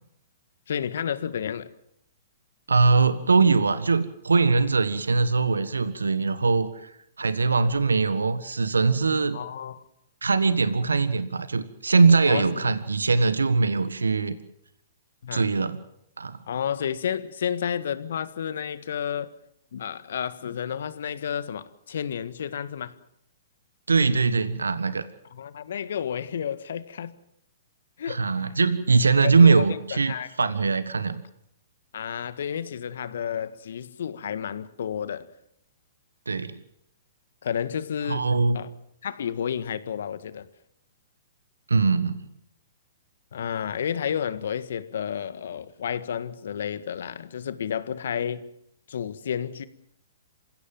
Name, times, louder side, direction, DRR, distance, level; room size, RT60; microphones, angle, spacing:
voice 1, 0.7-1.7 9.3-9.8 12.2-12.7 15.2-15.4 16.5-19.3 19.7-23.0 25.3-27.1 28.0-28.2 29.2-30.3 31.9-35.3 37.4-38.3 38.5-38.7 39.0-40.5 43.3-48.5 48.9-49.7, left 8 dB, 70° left, 1.7 m, -31 dB
voice 2, 2.7-9.4 10.2-14.4 15.3-15.8 16.2-16.4 23.9-25.0 28.1-31.2 36.3-36.6 38.1-38.6 41.7-42.2, right 4 dB, 90° right, 1.5 m, -22 dB
27.5 x 16.5 x 7.7 m
hypercardioid pair, 125°, 0 cm